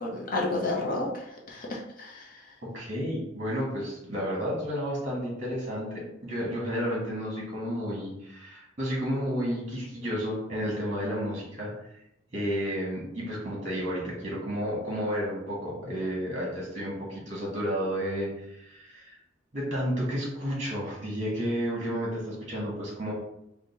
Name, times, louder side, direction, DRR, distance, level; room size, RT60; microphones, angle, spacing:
voice 1, 0.0-1.2 1.5-2.3, left 2 dB, 45° left, -2 dB, 0.6 m, -31 dB
voice 2, 2.6-11.7 12.3-19.1 19.5-23.1, equal, 35° right, -4 dB, 1.3 m, -31 dB
3.7 x 2.1 x 3.9 m, 0.82 s
head